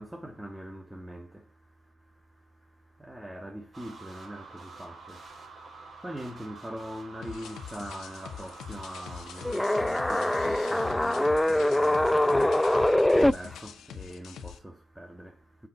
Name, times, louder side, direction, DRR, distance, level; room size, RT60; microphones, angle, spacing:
voice 1, 0.0-15.7, equal, 10° right, 1.5 m, -43 dB
sound 1, 3.7-11.0, right 3 dB, 40° right, 4.0 m, -47 dB
sound 2, 7.2-14.6, left 8 dB, 75° left, 1.4 m, -44 dB
sound 3, 9.4-13.3, left 1 dB, 10° left, 0.4 m, -23 dB
7.3 x 6.9 x 5.9 m
cardioid pair, 90°, 0 cm